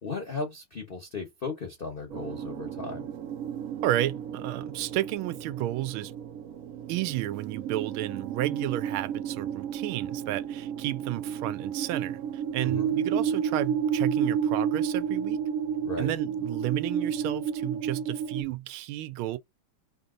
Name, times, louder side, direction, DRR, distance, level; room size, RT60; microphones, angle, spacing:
voice 1, 0.0-3.1 12.6-12.9 15.8-16.1, left 4 dB, 45° left, 0.7 m, -36 dB
sound 1, 2.1-18.4, right 8 dB, 75° right, 0.7 m, -31 dB
voice 2, 3.8-6.1 6.9-15.4 16.0-19.4, right 15 dB, 90° right, 1.4 m, -32 dB
3.4 x 2.7 x 3.7 m
omnidirectional pair, 2.2 m